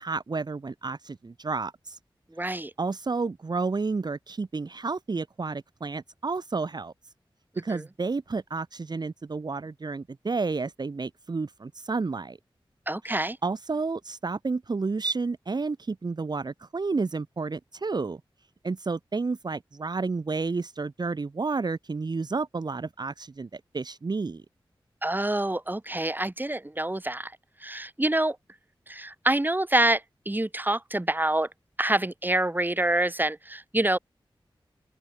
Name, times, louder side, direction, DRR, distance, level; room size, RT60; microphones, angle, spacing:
voice 1, 0.0-2.0 2.8-6.9 7.6-12.4 13.4-18.2 18.6-24.4, right 4 dB, 50° right, 0.9 m, -31 dB
voice 2, 2.3-2.7 7.7-7.8 12.9-13.4 25.0-27.3 27.6-28.4 28.9-31.5 31.8-34.0, right 1 dB, 20° right, 3.0 m, -26 dB
open air
wide cardioid pair, 60°, 9 cm